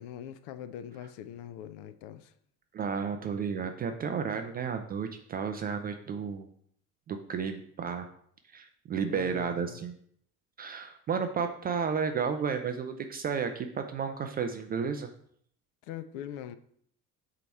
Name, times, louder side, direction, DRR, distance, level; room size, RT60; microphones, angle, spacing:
voice 1, 0.0-2.3 9.1-9.8 15.8-16.6, left 10 dB, 55° left, 12 dB, 0.5 m, -42 dB
voice 2, 2.7-6.5 7.1-8.1 8.5-9.9 10.6-15.1, right 6 dB, 20° right, 6 dB, 0.3 m, -32 dB
8.2 x 2.9 x 4.4 m, 0.64 s
figure-of-eight pair, 60°, 48 cm